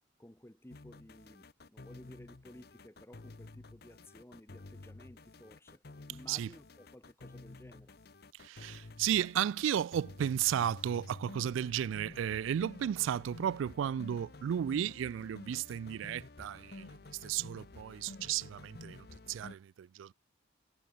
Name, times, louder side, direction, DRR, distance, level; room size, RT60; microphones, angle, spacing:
voice 1, 0.2-5.8 6.1-7.9, left 1 dB, 15° left, 0.9 m, -55 dB
sound 1, 0.7-19.6, left 2 dB, 55° left, 0.8 m, -51 dB
voice 2, 8.4-20.1, right 9 dB, 90° right, 0.3 m, -34 dB
head